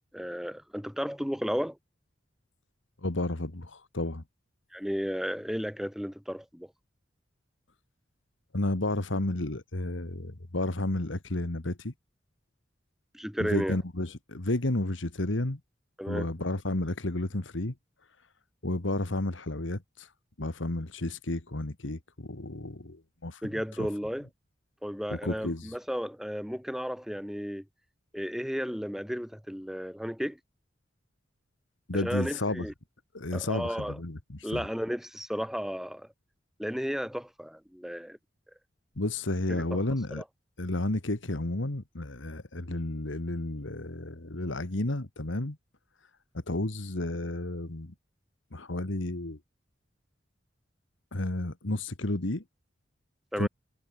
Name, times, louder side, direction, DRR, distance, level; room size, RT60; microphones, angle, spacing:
voice 1, 0.1-1.8 4.7-6.7 13.1-13.8 16.0-16.3 23.4-24.3 24.8-27.6 28.1-30.4 31.9-32.7 33.3-34.0 34.4-36.1 36.6-38.2 39.5-39.8 40.2-40.3 53.3-53.5, equal, ahead, 2.1 m, -33 dB
voice 2, 3.0-4.2 8.5-11.9 13.4-15.6 16.1-17.7 18.6-20.1 20.4-23.4 23.8-23.9 25.1-25.7 31.9-32.7 33.1-34.7 39.0-40.2 40.6-45.6 46.3-47.9 48.5-49.4 51.1-52.4 53.4-53.5, left 1 dB, 85° left, 1.9 m, -32 dB
head